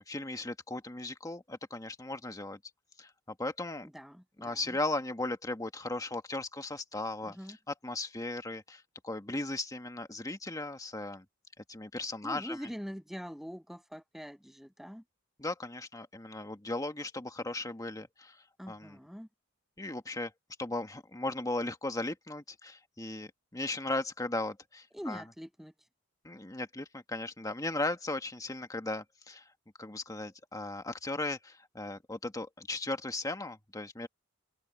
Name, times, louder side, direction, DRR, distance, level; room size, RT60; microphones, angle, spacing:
voice 1, 0.0-2.6 3.0-3.9 4.4-11.2 11.7-12.6 15.4-18.4 18.7-19.0 19.8-20.3 20.6-25.2 26.2-29.5 29.8-34.1, left 2 dB, 15° left, 1.5 m, -37 dB
voice 2, 3.9-4.8 7.3-7.6 12.2-15.0 18.6-19.3 24.9-25.7, equal, ahead, 7.2 m, -43 dB
head